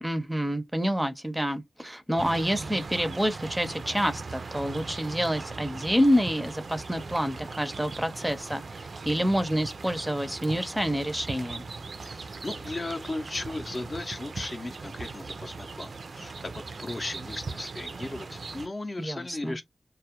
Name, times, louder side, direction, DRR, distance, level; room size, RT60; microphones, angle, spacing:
voice 1, 0.0-11.6 19.0-19.6, equal, 10° right, 0.5 m, -28 dB
sound 1, 2.2-18.7, right 4 dB, 75° right, 0.3 m, -39 dB
voice 2, 12.0-19.6, left 2 dB, 45° left, 0.5 m, -36 dB
2.2 x 2.0 x 2.8 m
cardioid pair, 60°, 0 cm